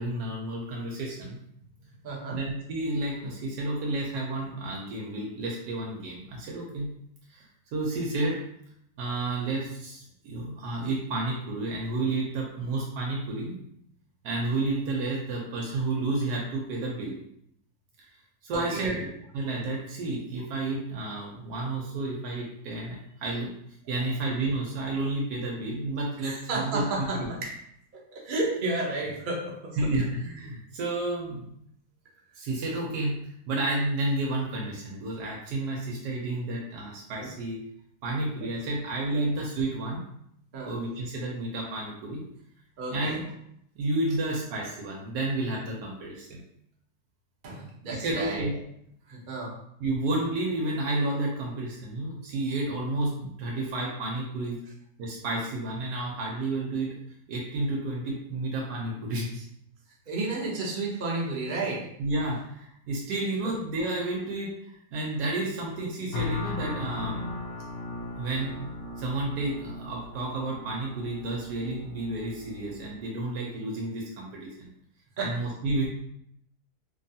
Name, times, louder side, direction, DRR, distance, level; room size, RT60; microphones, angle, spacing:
voice 1, 0.0-1.4 2.3-6.9 7.3-7.4 7.7-8.4 9.0-13.6 14.2-17.2 18.4-23.5 23.9-27.3 29.8-31.5 32.3-33.2 33.5-37.6 38.0-40.0 40.6-42.2 42.9-43.2 43.8-46.4 47.9-48.5 49.8-54.6 55.0-56.9 57.3-59.3 62.0-67.4 68.2-68.6 69.0-74.7 75.2-75.9, right 2 dB, 90° right, -2 dB, 1.2 m, -31 dB
voice 2, 2.0-2.4 18.5-19.0 26.2-27.5 28.1-29.9 38.4-38.5 39.1-39.2 40.5-40.8 42.8-43.2 47.4-48.4 49.1-49.5 60.1-61.8 75.2-75.3, right 2 dB, 50° right, -3 dB, 0.6 m, -32 dB
sound 1, 66.1-73.0, left 2 dB, 70° left, 1.0 m, -37 dB
3.0 x 2.3 x 2.6 m, 0.73 s
omnidirectional pair, 1.7 m